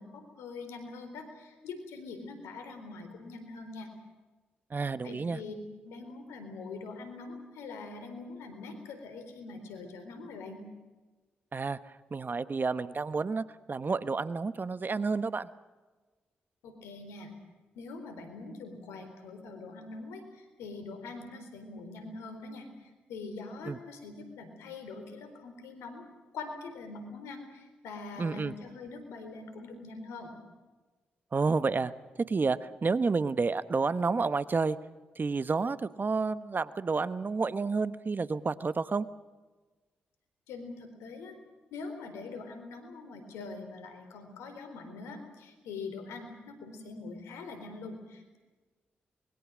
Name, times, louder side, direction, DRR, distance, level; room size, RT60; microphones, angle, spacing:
voice 1, 0.0-3.9 5.0-5.5 5.8-10.6 16.6-17.3 17.7-26.0 26.3-30.4 40.5-41.4 41.7-48.4, left 3 dB, 85° left, 7 dB, 4.0 m, -43 dB
voice 2, 4.7-5.4 11.5-11.8 12.1-15.5 23.7-23.8 28.2-28.5 31.3-31.9 32.3-34.8 35.2-39.1, right 4 dB, 45° right, 14 dB, 1.2 m, -30 dB
25.0 x 22.0 x 6.4 m, 1.2 s
hypercardioid pair, 40°, 5 cm